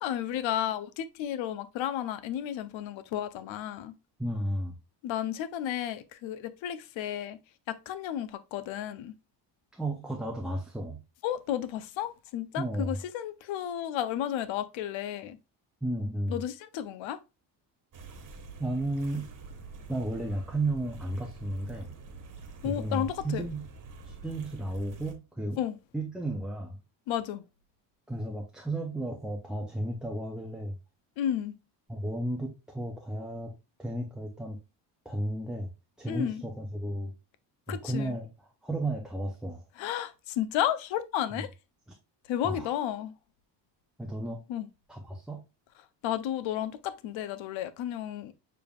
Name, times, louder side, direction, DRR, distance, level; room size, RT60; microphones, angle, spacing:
voice 1, 0.0-3.9 5.0-7.4 7.7-9.1 11.2-15.4 16.3-17.2 22.6-23.5 25.6-25.8 27.1-27.4 31.2-31.5 36.1-36.4 37.7-38.2 39.8-41.5 42.3-43.1 44.5-44.7 46.0-48.3, left 11 dB, 90° left, 0.7 m, -32 dB
voice 2, 4.2-4.7 9.7-11.0 12.6-12.9 15.8-16.4 18.6-19.3 19.9-21.9 22.6-23.7 24.0-25.6 25.9-26.8 28.1-30.7 31.9-33.5 33.8-34.6 35.0-35.7 36.0-37.1 37.7-38.3 38.6-39.6 42.4-42.8 44.0-44.4 44.9-45.4, right 1 dB, ahead, 0.4 m, -33 dB
sound 1, 17.9-25.1, right 4 dB, 45° right, 1.3 m, -46 dB
6.9 x 3.4 x 2.3 m
cardioid pair, 170°, 45 cm